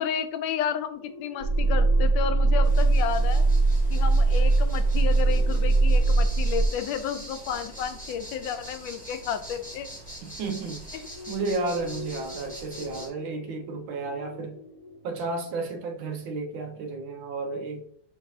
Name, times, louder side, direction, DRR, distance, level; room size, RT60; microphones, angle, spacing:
voice 1, 0.0-3.4 3.9-9.9 10.9-11.1, left 8 dB, 80° left, 1.3 m, -32 dB
sound 1, 0.8-10.1 11.0-15.5, left 4 dB, 60° left, 1.2 m, -45 dB
sound 2, 1.4-6.7, right 3 dB, 60° right, 0.8 m, -21 dB
sound 3, 2.6-13.1, right 1 dB, 5° left, 1.2 m, -43 dB
voice 2, 10.2-14.6 15.0-17.8, right 3 dB, 85° right, 1.5 m, -33 dB
5.9 x 3.3 x 2.7 m
omnidirectional pair, 2.1 m